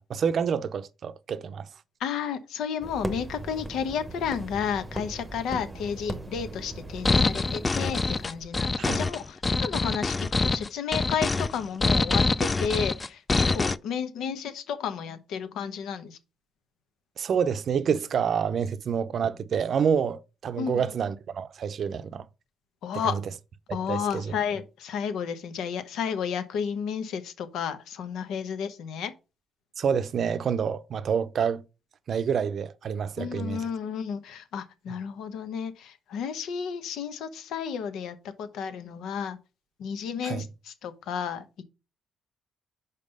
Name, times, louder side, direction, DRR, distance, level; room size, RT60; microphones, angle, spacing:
voice 1, 0.0-1.7 8.8-9.0 17.2-22.3 23.0-23.2 23.9-24.3 29.8-31.6 32.1-33.6 40.2-40.4, right 7 dB, 55° right, 0.5 m, -28 dB
voice 2, 2.0-16.2 20.5-20.8 22.8-23.2 23.7-29.1 33.2-39.4 39.8-41.6, left 7 dB, 80° left, 1.0 m, -32 dB
sound 1, 2.8-8.5, right 2 dB, 15° right, 0.9 m, -38 dB
sound 2, 7.0-13.8, left 3 dB, 25° left, 0.3 m, -25 dB
5.4 x 4.1 x 5.2 m
cardioid pair, 90°, 0 cm